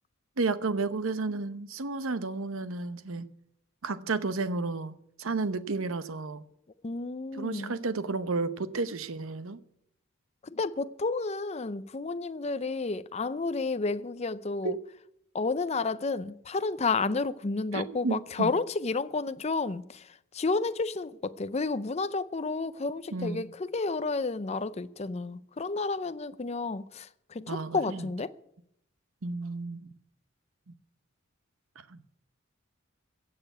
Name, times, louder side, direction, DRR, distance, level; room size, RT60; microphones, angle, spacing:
voice 1, 0.4-3.3 3.8-6.5 7.3-9.6 14.6-14.8 17.7-18.5 23.1-23.4 27.5-28.1 29.2-29.9 31.9-32.0, right 3 dB, 75° right, 0.8 m, -32 dB
voice 2, 6.8-7.7 10.4-14.8 15.3-20.1 20.3-28.3, left 3 dB, 30° left, 0.5 m, -31 dB
16.0 x 6.8 x 9.2 m
head